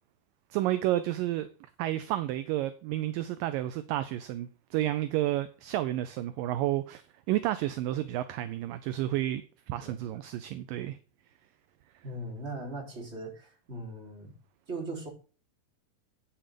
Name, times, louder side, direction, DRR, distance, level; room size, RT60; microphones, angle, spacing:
voice 1, 0.5-1.5 1.8-11.0, right 14 dB, 80° right, 2.1 m, -31 dB
voice 2, 9.8-10.1 12.0-14.3 14.7-15.1, right 2 dB, 20° right, 3.3 m, -39 dB
8.9 x 7.4 x 5.2 m
omnidirectional pair, 4.4 m